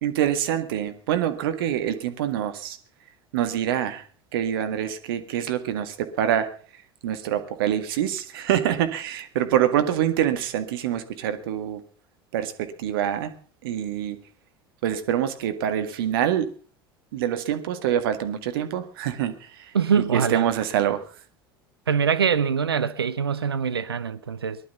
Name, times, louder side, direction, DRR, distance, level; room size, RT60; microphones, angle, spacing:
voice 1, 0.0-2.8 3.3-4.0 4.3-6.5 7.0-11.8 12.3-13.3 13.6-14.2 14.8-16.5 17.1-19.7 20.0-21.0, right 10 dB, 70° right, 1.9 m, -25 dB
voice 2, 19.7-20.4 21.9-24.6, right 7 dB, 90° right, 0.7 m, -23 dB
19.0 x 12.0 x 5.7 m
hypercardioid pair, 75°, 12 cm